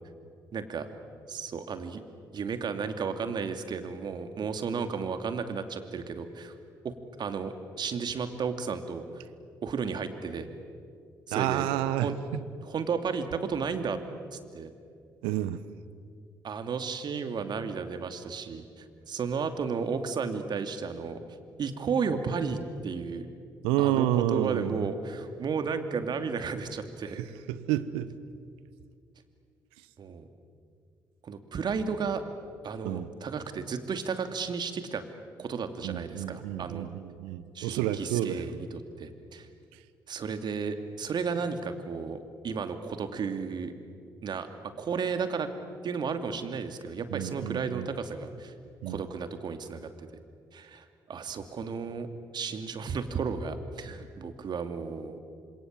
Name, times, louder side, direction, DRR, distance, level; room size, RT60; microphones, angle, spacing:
voice 1, 0.5-0.9 1.3-2.0 2.3-6.5 6.8-9.2 9.6-10.5 11.3-11.7 12.0-12.2 12.6-14.0 14.3-14.7 16.4-21.2 21.6-23.3 23.8-27.2 30.0-30.3 31.2-32.2 32.6-35.0 35.4-36.9 37.5-38.7 39.0-39.5 40.1-43.7 44.2-44.5 44.8-45.5 45.8-48.5 48.8-49.9 50.5-52.1 52.3-55.2, right 5 dB, 50° right, 8 dB, 2.7 m, -33 dB
voice 2, 11.3-12.1 15.2-15.6 23.6-24.9 27.2-28.2 29.8-29.9 32.8-33.1 35.8-38.6 39.7-39.8 47.1-47.9 48.8-49.1, right 13 dB, 75° right, 15 dB, 1.2 m, -30 dB
28.0 x 27.0 x 7.7 m, 2.3 s
figure-of-eight pair, 45°, 9 cm